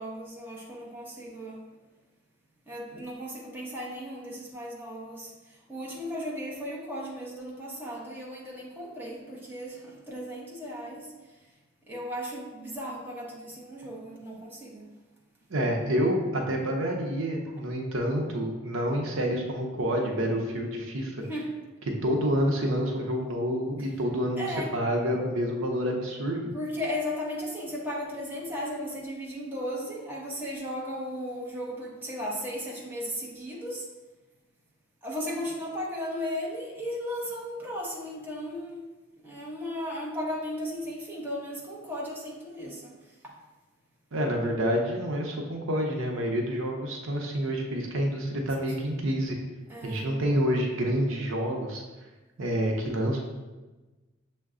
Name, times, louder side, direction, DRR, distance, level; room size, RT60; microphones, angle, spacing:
voice 1, 0.0-1.6 2.7-5.3 5.7-11.1 11.9-14.9 21.3-21.5 24.4-24.7 26.5-33.9 35.0-38.9 39.2-42.9 49.7-50.2, equal, 10° right, -5 dB, 0.8 m, -36 dB
voice 2, 15.5-21.2 22.0-26.5 44.1-49.4 49.8-51.8 52.4-53.2, equal, 80° right, 1 dB, 0.7 m, -28 dB
6.5 x 2.2 x 3.6 m, 1.2 s
head